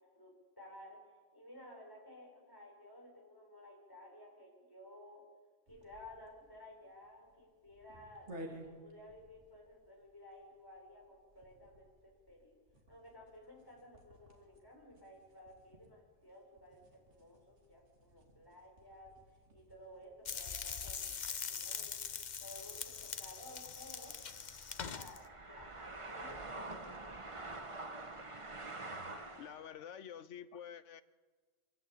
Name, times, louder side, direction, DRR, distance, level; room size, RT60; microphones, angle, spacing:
voice 1, 0.1-1.0 1.3-5.2 5.7-8.3 8.6-12.6 12.9-19.1 19.5-22.0 22.4-24.1 24.9-27.7, left 1 dB, 20° left, -1 dB, 5.3 m, -55 dB
sound 1, 5.7-20.6, equal, 70° right, 3.2 m, -57 dB
sound 2, 20.2-25.2, left 6 dB, 45° left, 0.8 m, -42 dB
sound 3, 22.5-29.7, right 2 dB, 25° right, 1.3 m, -47 dB
voice 2, 29.1-31.0, left 9 dB, 80° left, 13 dB, 1.2 m, -49 dB
25.0 x 15.5 x 8.6 m, 1.5 s
omnidirectional pair, 1.2 m